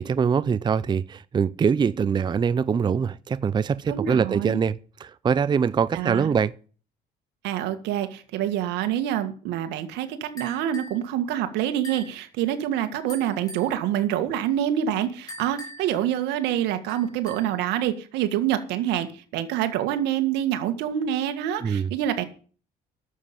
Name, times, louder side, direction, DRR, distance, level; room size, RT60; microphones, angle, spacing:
voice 1, 0.0-6.5 21.6-21.9, right 6 dB, 25° right, 0.5 m, -23 dB
voice 2, 3.9-4.6 5.9-6.3 7.4-22.2, right 11 dB, 90° right, 1.9 m, -26 dB
sound 1, 10.4-11.0 11.8-12.2 13.1-13.7 15.3-16.0 16.9-17.6, right 1 dB, 20° left, 4.3 m, -41 dB
11.0 x 7.6 x 8.7 m
cardioid pair, 110°, 17 cm